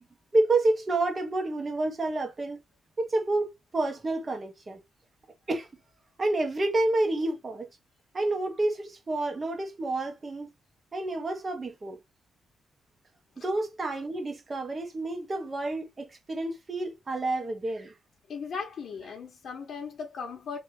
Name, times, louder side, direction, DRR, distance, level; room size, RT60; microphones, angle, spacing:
voice 1, 0.3-2.6 3.0-4.8 5.5-5.7 6.2-7.7 8.1-10.5 10.9-12.0 13.4-17.9, right 2 dB, 30° right, 1.4 m, -29 dB
voice 2, 18.3-20.6, left 5 dB, 60° left, 1.2 m, -37 dB
3.3 x 3.1 x 4.8 m
cardioid pair, 115°, 0 cm